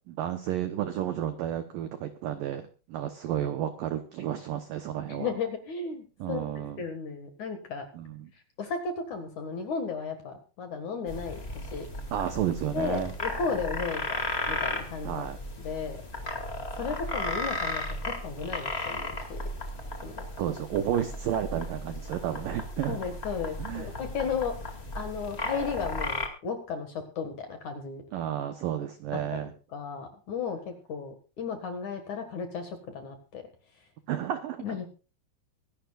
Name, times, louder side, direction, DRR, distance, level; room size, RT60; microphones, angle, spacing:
voice 1, 0.0-5.3 6.2-6.8 7.9-8.3 12.1-13.1 15.0-15.4 20.4-23.0 23.6-23.9 28.1-29.5 34.1-34.6, right 10 dB, 80° right, 9 dB, 2.0 m, -32 dB
voice 2, 5.1-6.5 6.8-7.8 8.6-11.9 12.7-14.2 14.5-15.2 15.6-16.0 16.8-19.4 20.0-20.1 22.9-24.5 24.9-28.0 29.3-33.4 34.6-35.0, left 5 dB, 55° left, 6 dB, 2.5 m, -34 dB
sound 1, 11.1-26.3, left 1 dB, 30° left, 1.1 m, -35 dB
24.5 x 11.5 x 2.4 m, 0.33 s
omnidirectional pair, 5.4 m